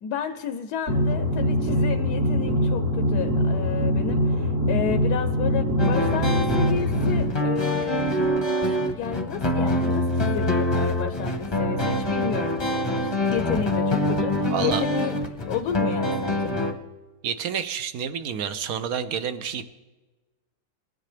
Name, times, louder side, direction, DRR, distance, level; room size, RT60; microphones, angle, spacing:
voice 1, 0.0-8.0 8.8-16.6, left 8 dB, 75° left, 9 dB, 1.2 m, -32 dB
sound 1, 0.9-7.3, equal, 50° right, 2.0 m, -23 dB
sound 2, 5.8-16.7, left 1 dB, 20° left, 0.8 m, -25 dB
voice 2, 14.5-14.8 17.2-19.6, right 8 dB, 65° right, 11 dB, 1.1 m, -29 dB
20.0 x 10.5 x 3.3 m, 1.2 s
omnidirectional pair, 1.8 m